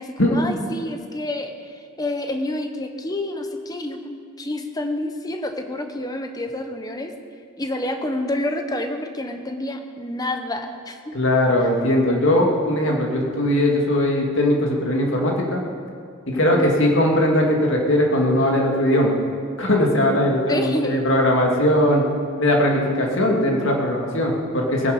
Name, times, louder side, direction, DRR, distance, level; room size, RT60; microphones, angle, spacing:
voice 1, 0.0-1.5 2.0-7.1 7.6-11.1 16.3-16.7 20.5-21.1, left 1 dB, 20° left, 6 dB, 1.0 m, -28 dB
voice 2, 11.1-15.6 16.3-19.1 19.6-22.0 22.4-24.9, left 1 dB, 70° left, -1 dB, 2.4 m, -19 dB
20.0 x 9.9 x 5.3 m, 2.2 s
head